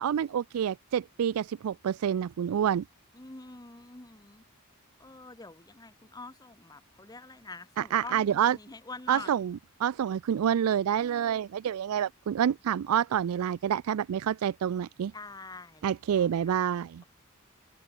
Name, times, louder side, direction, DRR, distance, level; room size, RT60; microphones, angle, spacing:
voice 1, 0.0-2.8 7.8-8.6 9.1-15.1 15.8-17.0, right 9 dB, 85° right, 0.3 m, -28 dB
voice 2, 3.1-4.4 5.0-9.3 15.1-15.9 16.1-16.3, left 3 dB, 20° left, 1.1 m, -45 dB
head